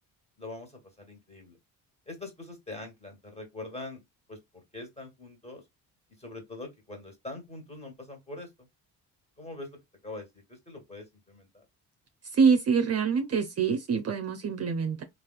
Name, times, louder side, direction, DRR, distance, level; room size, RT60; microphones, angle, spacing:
voice 1, 0.4-1.6 2.1-4.0 4.3-5.6 6.2-8.7 9.4-11.6, left 2 dB, 15° left, 1.6 m, -43 dB
voice 2, 12.3-15.0, right 5 dB, 40° right, 0.6 m, -25 dB
3.3 x 2.5 x 2.3 m
supercardioid pair, 80°, 39 cm